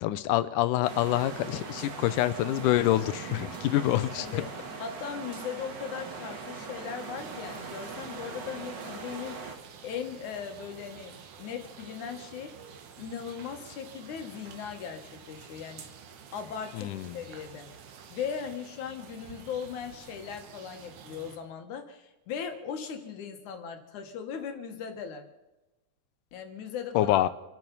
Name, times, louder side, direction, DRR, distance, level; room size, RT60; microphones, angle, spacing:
voice 1, 0.0-4.4 16.7-17.2 26.9-27.3, left 14 dB, 90° left, 14 dB, 2.3 m, -26 dB
sound 1, 0.8-9.6, right 4 dB, 45° right, 1.6 m, -40 dB
voice 2, 4.2-4.5 4.8-9.6 9.8-12.5 13.0-15.8 16.3-17.7 18.1-25.3 26.3-27.2, left 7 dB, 75° left, 5 dB, 2.9 m, -38 dB
sound 2, 7.2-21.4, right 7 dB, 75° right, 2.6 m, -49 dB
27.5 x 9.2 x 5.5 m, 1.0 s
omnidirectional pair, 3.6 m